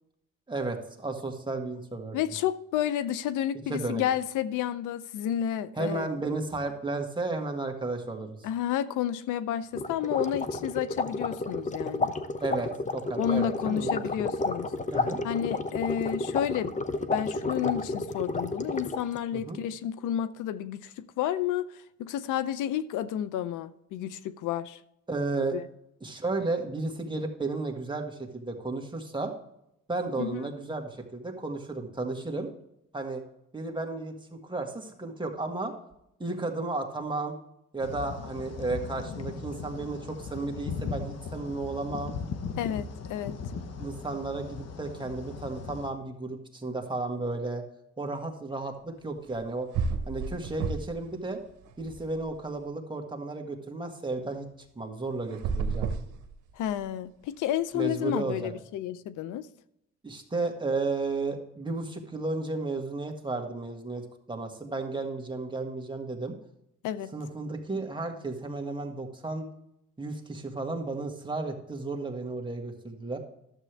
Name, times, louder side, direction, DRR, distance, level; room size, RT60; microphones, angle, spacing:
voice 1, 0.5-2.2 3.7-4.0 5.8-8.4 12.4-14.0 14.9-15.2 19.3-19.6 25.1-25.6 26.0-29.3 29.9-32.5 32.9-33.2 33.5-35.7 36.2-37.3 37.7-42.1 43.8-47.6 48.0-49.7 50.1-51.4 51.8-54.5 54.7-55.9 57.7-58.5 60.0-66.3 67.1-69.5 70.0-73.2, right 3 dB, 15° right, 1.7 m, -33 dB
voice 2, 2.1-6.1 8.4-12.1 13.2-14.7 15.2-16.7 17.1-24.8 25.5-25.6 30.2-30.5 42.6-43.4 56.6-59.5 66.8-67.1, left 10 dB, 85° left, 0.6 m, -31 dB
sound 1, 9.7-19.2, left 3 dB, 25° left, 0.8 m, -31 dB
sound 2, 37.8-45.9, left 5 dB, 55° left, 1.1 m, -38 dB
sound 3, 49.3-49.4 49.7-51.1 51.4-52.5 55.3-56.8, right 5 dB, 80° right, 1.0 m, -32 dB
12.0 x 7.5 x 3.3 m
cardioid pair, 90°, 30 cm